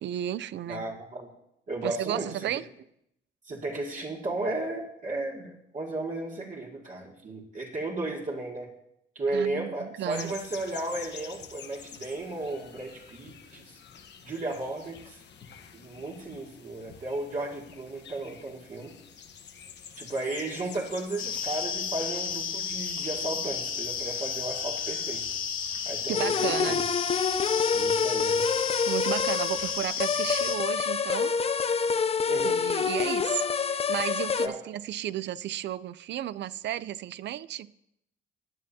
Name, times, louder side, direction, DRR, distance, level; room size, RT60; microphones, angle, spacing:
voice 1, 0.0-0.8 1.8-2.7 9.3-10.3 26.1-26.8 28.9-31.3 32.4-33.5 33.7-37.7, right 12 dB, 65° right, 0.4 m, -33 dB
voice 2, 0.7-1.3 1.7-2.5 3.4-8.7 9.2-13.8 14.2-15.2 15.7-19.0 20.0-25.2 25.8-26.8 27.7-28.4 32.3-32.6 34.4-34.6, right 2 dB, 40° right, 2.3 m, -34 dB
sound 1, 10.1-21.7, left 7 dB, 60° left, 1.1 m, -47 dB
sound 2, 21.2-30.6, left 6 dB, 90° left, 2.5 m, -32 dB
sound 3, 26.1-34.5, left 5 dB, 30° left, 0.5 m, -27 dB
17.0 x 9.5 x 2.8 m
cardioid pair, 90°, 20 cm